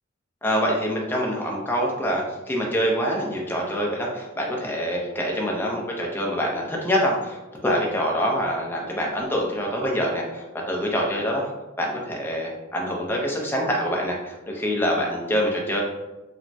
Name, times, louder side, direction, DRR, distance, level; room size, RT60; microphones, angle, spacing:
voice 1, 0.4-11.5 11.8-15.8, equal, 10° left, -2 dB, 0.4 m, -25 dB
3.3 x 2.0 x 2.5 m, 1.1 s
head